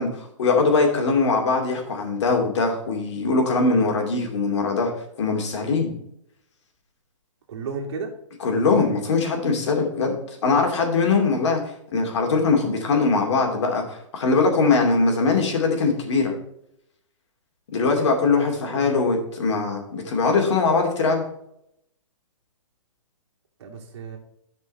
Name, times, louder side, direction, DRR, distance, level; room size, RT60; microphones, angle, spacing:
voice 1, 0.0-4.9 5.2-5.9 8.4-10.1 10.4-11.6 11.9-16.3 17.7-21.2, left 4 dB, 60° left, 2 dB, 2.7 m, -21 dB
voice 2, 7.5-8.1 18.4-19.1 23.6-24.2, right 4 dB, 55° right, 1 dB, 2.4 m, -34 dB
11.0 x 5.4 x 4.3 m, 0.76 s
hypercardioid pair, 155°, 17 cm